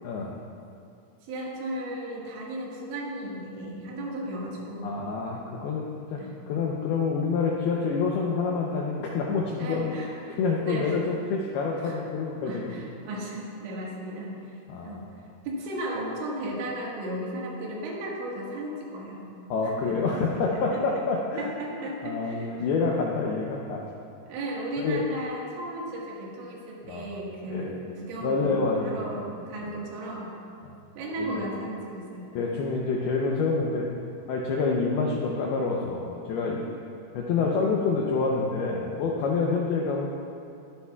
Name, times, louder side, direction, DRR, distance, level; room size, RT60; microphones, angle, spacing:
voice 1, 0.0-0.3 4.8-10.0 10.4-12.7 14.7-15.0 19.5-21.5 22.0-23.8 24.8-25.1 26.9-27.2 27.5-27.7 28.2-29.0 31.2-31.4 32.4-33.9 34.3-36.6 37.1-40.1, left 4 dB, 80° left, -2 dB, 2.3 m, -27 dB
voice 2, 1.2-4.9 6.2-6.3 9.6-11.0 11.8-12.0 12.4-15.0 15.5-19.3 19.6-20.0 20.5-20.9 21.4-22.7 24.3-30.3 31.0-32.3, right 1 dB, 80° right, -3 dB, 4.1 m, -35 dB
21.0 x 10.0 x 2.4 m, 2.5 s
omnidirectional pair, 5.5 m